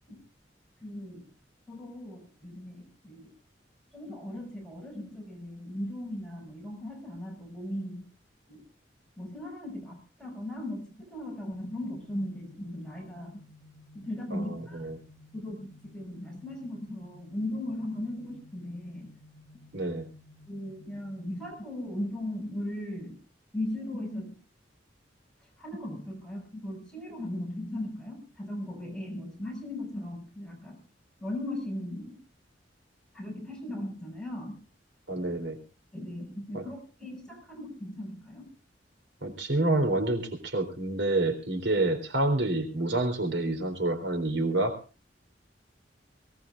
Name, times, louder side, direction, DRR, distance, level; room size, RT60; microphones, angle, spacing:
voice 1, 0.8-1.3 1.7-3.3 3.9-8.1 8.5-8.6 9.2-13.4 13.9-14.8 15.3-19.1 19.5-19.6 20.5-23.2 23.5-24.4 25.6-30.8 31.2-32.2 33.1-34.6 35.9-38.5, left 1 dB, 5° left, -1 dB, 6.6 m, -38 dB
sound 1, 11.5-21.5, left 2 dB, 30° left, 4.9 m, -55 dB
voice 2, 14.3-15.0 19.7-20.1 35.1-35.6 36.5-36.6 39.2-44.8, right 2 dB, 75° right, 7 dB, 3.8 m, -28 dB
23.5 x 18.5 x 2.5 m, 0.32 s
head